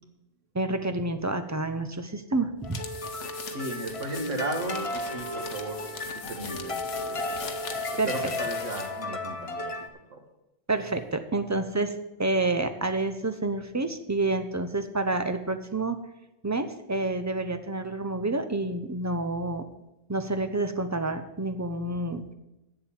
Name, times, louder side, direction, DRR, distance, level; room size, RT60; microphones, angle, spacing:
voice 1, 0.5-2.8 8.0-8.3 10.7-11.9 12.2-16.0 16.4-19.7 20.1-22.2, right 2 dB, 20° right, 8 dB, 0.5 m, -28 dB
sound 1, 2.6-9.0, left 5 dB, 75° left, 1.3 m, -41 dB
sound 2, 2.6-9.9, left 2 dB, 35° left, 0.7 m, -34 dB
voice 2, 3.5-5.9 6.3-6.7 7.0-7.2 7.5-7.6 8.1-9.7 10.1-10.2, right 2 dB, 90° right, 3 dB, 1.9 m, -35 dB
7.8 x 7.4 x 8.6 m, 0.94 s
omnidirectional pair, 1.2 m